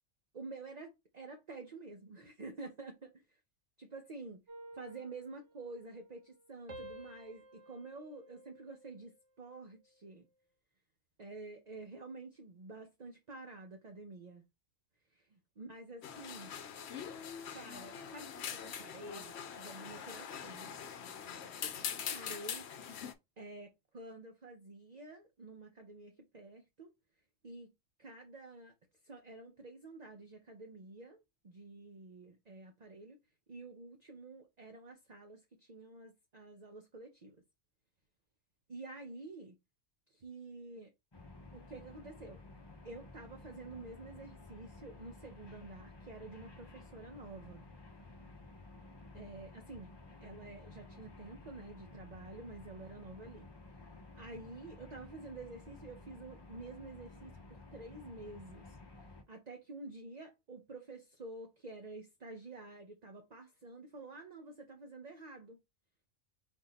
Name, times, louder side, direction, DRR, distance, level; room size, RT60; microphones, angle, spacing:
voice 1, 0.3-3.4 3.8-4.4 4.7-10.3 11.2-14.4 15.1-16.5 17.5-20.7 22.1-23.0 23.4-26.9 27.4-27.7 28.0-28.7 29.0-33.2 33.5-37.4 38.7-39.6 40.1-40.9 41.5-42.4 42.8-47.6 49.1-49.9 50.2-53.5 54.1-65.6, right 2 dB, 40° right, 0.8 m, -49 dB
sound 1, 4.5-6.4 6.7-9.3 9.7-10.1, right 1 dB, 70° right, 1.4 m, -53 dB
sound 2, 16.0-23.1, left 8 dB, 65° left, 0.9 m, -43 dB
sound 3, 41.1-59.2, left 2 dB, 25° left, 0.7 m, -54 dB
4.6 x 2.7 x 4.0 m
omnidirectional pair, 1.3 m